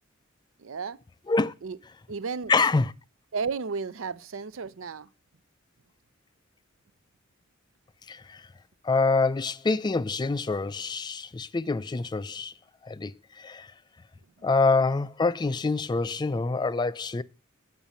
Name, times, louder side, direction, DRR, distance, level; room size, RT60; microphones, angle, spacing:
voice 1, 0.6-1.0 1.6-1.8 2.1-2.5 3.3-5.1, right 5 dB, 70° right, 0.6 m, -33 dB
voice 2, 2.5-2.9 8.1-8.5 8.8-12.5 12.8-13.7 14.4-17.2, left 3 dB, 20° left, 0.4 m, -26 dB
8.8 x 6.0 x 5.4 m
head